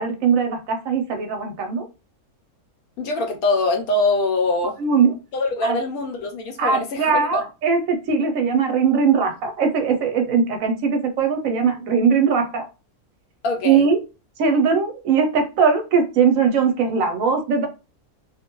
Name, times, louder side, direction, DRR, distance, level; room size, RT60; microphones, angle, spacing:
voice 1, 0.0-1.8 4.8-5.1 5.6-5.8 6.6-12.6 13.6-14.0 14.4-17.7, right 5 dB, 70° right, 0.9 m, -20 dB
voice 2, 3.0-4.8 5.3-7.4 13.4-13.9, left 2 dB, 75° left, 1.1 m, -23 dB
2.5 x 2.1 x 2.9 m
omnidirectional pair, 1.6 m